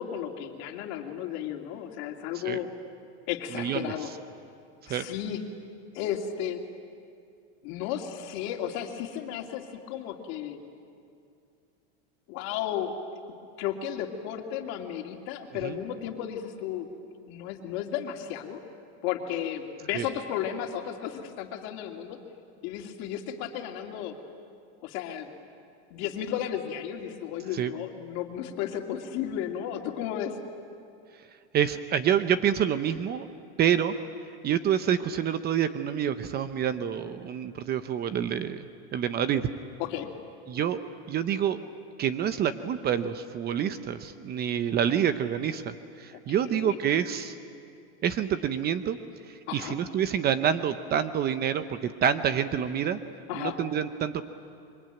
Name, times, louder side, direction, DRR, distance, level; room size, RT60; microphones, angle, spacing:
voice 1, 0.0-2.7 3.3-4.1 4.9-5.4 5.9-6.6 7.6-10.6 12.3-12.9 13.6-16.9 17.3-18.6 19.0-22.2 22.6-24.1 24.8-25.3 25.9-30.3 39.8-40.1 46.1-46.8 49.5-49.8 53.3-53.6, left 10 dB, 50° left, 3 dB, 2.9 m, -34 dB
voice 2, 3.5-3.9 4.9-5.1 15.6-15.8 19.9-20.0 27.5-27.7 31.5-33.2 33.6-33.9 34.4-39.5 40.5-40.8 41.1-41.6 42.0-47.4 48.0-49.0 49.3-53.0 53.3-54.2, right 9 dB, 30° right, 12 dB, 0.8 m, -27 dB
26.5 x 24.0 x 9.2 m, 2.4 s
supercardioid pair, 140°, 34 cm